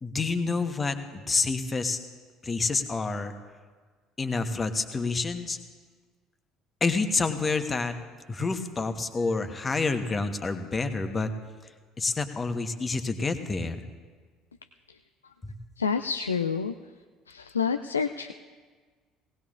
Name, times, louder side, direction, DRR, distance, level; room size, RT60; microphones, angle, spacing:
voice 1, 0.0-2.0 2.4-3.3 4.2-5.6 6.8-7.9 8.3-11.3 12.0-13.8 15.4-15.5, left 3 dB, 25° left, 8 dB, 1.2 m, -28 dB
voice 2, 15.8-16.7 17.3-18.3, left 6 dB, 80° left, 9 dB, 0.3 m, -28 dB
18.5 x 18.5 x 2.5 m, 1.5 s
figure-of-eight pair, 60°, 0 cm